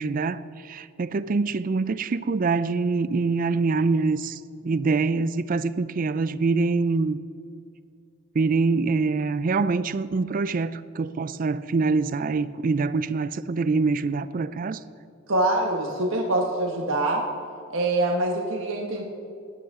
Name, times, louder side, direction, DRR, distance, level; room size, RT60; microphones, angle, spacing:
voice 1, 0.0-7.2 8.3-14.8, right 4 dB, 40° right, 0.4 m, -25 dB
voice 2, 15.3-17.2 17.7-19.0, right 2 dB, 75° right, 1.2 m, -24 dB
17.0 x 10.5 x 3.7 m
head